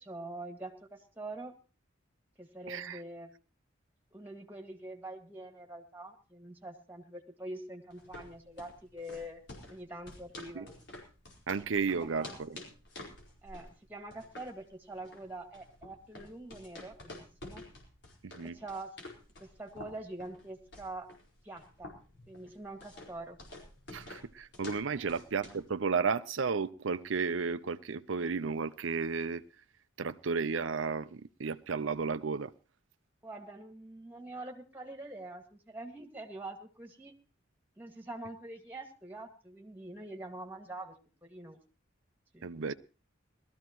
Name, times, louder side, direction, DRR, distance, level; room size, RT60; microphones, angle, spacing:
voice 1, 0.0-1.6 2.4-3.3 4.1-9.4 9.7-10.8 12.0-12.5 13.4-17.6 18.4-19.0 19.4-21.1 21.4-21.9 22.3-23.4 25.0-25.1 33.2-37.1 37.8-40.9 41.2-41.6 42.3-42.5, right 2 dB, 10° right, 2.1 m, -45 dB
voice 2, 2.7-3.0 10.5-10.7 11.5-12.6 18.2-18.6 23.9-29.4 30.0-32.5 42.4-42.7, right 5 dB, 75° right, 0.6 m, -33 dB
sound 1, 7.9-25.7, left 2 dB, 60° left, 4.7 m, -50 dB
20.5 x 14.0 x 3.1 m
head